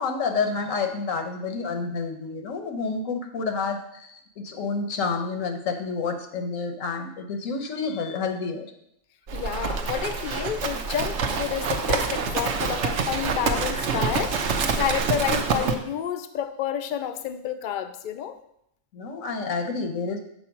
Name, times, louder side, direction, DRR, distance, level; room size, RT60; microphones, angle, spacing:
voice 1, 0.0-8.7 13.7-13.8 18.9-20.2, left 4 dB, 80° left, 6 dB, 1.3 m, -29 dB
voice 2, 9.3-14.4 14.8-18.4, left 9 dB, 55° left, 9 dB, 0.6 m, -29 dB
Livestock farm animals working animals, 9.3-15.8, right 5 dB, 65° right, 1.0 m, -26 dB
7.0 x 4.2 x 5.8 m, 0.74 s
omnidirectional pair, 1.3 m